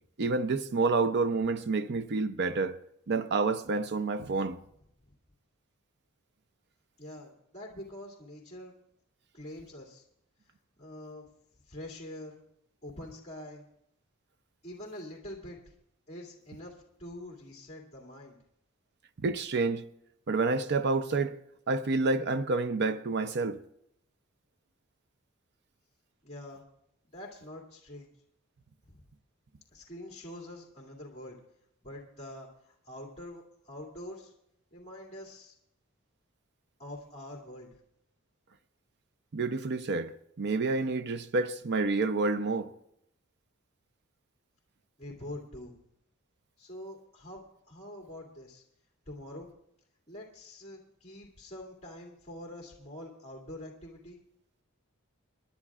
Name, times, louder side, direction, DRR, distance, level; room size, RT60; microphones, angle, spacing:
voice 1, 0.2-2.8 3.1-4.6 19.2-19.9 20.3-21.4 21.7-23.6 39.3-40.1 40.4-42.7, right 3 dB, 55° right, 0.6 m, -28 dB
voice 2, 7.0-8.7 9.3-10.1 10.8-11.3 11.7-12.4 12.8-13.6 14.6-15.6 16.1-18.4 26.2-26.6 27.1-28.1 28.9-29.0 29.7-31.4 31.8-34.3 34.7-35.5 36.8-37.7 45.0-45.8 46.6-48.6 49.1-49.5 50.1-54.2, left 1 dB, 30° left, 2.5 m, -45 dB
29.0 x 11.0 x 2.4 m
head